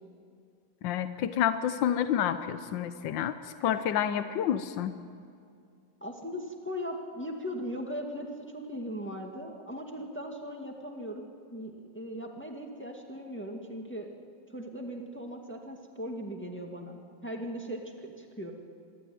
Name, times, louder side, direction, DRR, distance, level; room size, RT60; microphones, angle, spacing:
voice 1, 0.8-4.9, left 9 dB, 80° left, 10 dB, 1.5 m, -29 dB
voice 2, 6.0-14.1 14.5-18.5, equal, 5° left, 2 dB, 1.9 m, -39 dB
26.0 x 12.5 x 9.5 m, 2.3 s
omnidirectional pair, 2.0 m